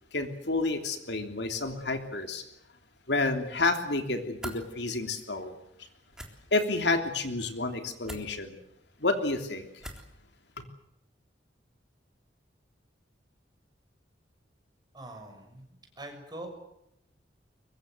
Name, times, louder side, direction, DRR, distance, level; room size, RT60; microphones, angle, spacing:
voice 1, 0.1-2.4 3.1-5.5 6.5-8.6 9.0-9.7 10.6-10.7, left 2 dB, 65° left, 6 dB, 3.1 m, -30 dB
sound 1, 4.4-4.6 6.1-6.3 8.0-8.3 9.8-10.1, right 1 dB, 5° right, 3.5 m, -40 dB
voice 2, 14.9-16.5, right 1 dB, 25° right, 3 dB, 6.6 m, -44 dB
23.5 x 22.5 x 7.9 m, 0.80 s
head